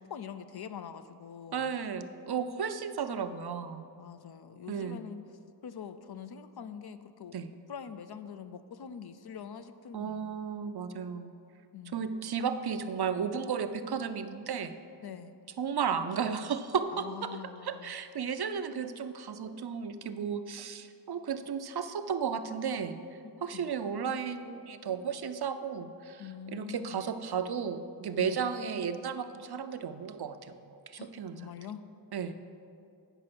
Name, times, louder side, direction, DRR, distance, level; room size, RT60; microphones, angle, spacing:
voice 1, 0.0-1.8 4.0-5.2 5.6-7.4 7.7-10.4 11.7-12.1 15.0-15.4 16.9-18.0 23.2-23.8 26.2-27.1 28.2-28.4 31.0-31.1 31.3-31.8, left 7 dB, 65° left, 11 dB, 0.5 m, -44 dB
voice 2, 1.5-3.9 4.7-5.0 7.3-7.5 9.9-11.3 11.9-14.8 15.6-23.0 23.4-31.5 32.1-32.3, right 6 dB, 65° right, 10 dB, 0.6 m, -34 dB
9.0 x 5.5 x 5.9 m, 2.5 s
wide cardioid pair, 60°, 42 cm